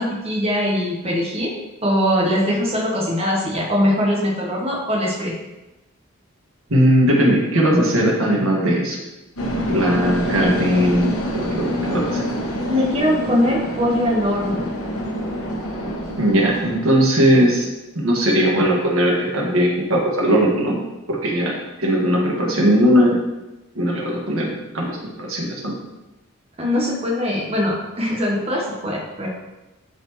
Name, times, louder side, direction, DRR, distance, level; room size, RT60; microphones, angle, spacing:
voice 1, 0.0-1.6 1.8-5.3 10.3-10.5 12.7-14.7 26.6-29.3, left 1 dB, 25° right, -3 dB, 1.1 m, -21 dB
voice 2, 6.7-9.0 9.7-12.2 16.2-17.7 18.0-20.8 21.1-23.2 23.8-25.7, equal, 75° right, -2 dB, 1.8 m, -19 dB
sound 1, 9.4-16.8, equal, 80° left, 1.4 m, -26 dB
11.5 x 4.3 x 3.1 m, 1.0 s
head